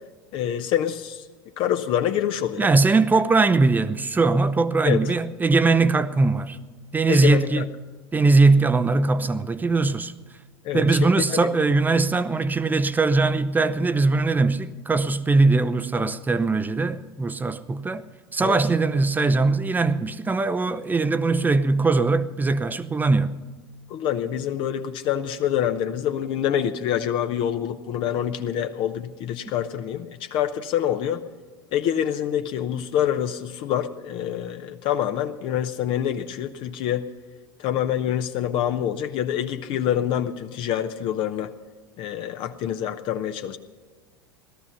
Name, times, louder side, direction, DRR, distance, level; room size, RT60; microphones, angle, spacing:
voice 1, 0.3-1.2 1.6-2.7 4.8-5.1 7.1-7.6 10.6-11.5 18.4-18.6 23.9-31.2 31.7-37.1 37.6-41.5 42.0-43.6, left 10 dB, 45° left, 0.8 m, -26 dB
voice 2, 2.6-6.6 6.9-7.7 8.1-10.1 10.7-18.0 18.3-23.4, right 3 dB, 15° right, 0.7 m, -21 dB
18.0 x 13.5 x 5.6 m
figure-of-eight pair, 80°, 12 cm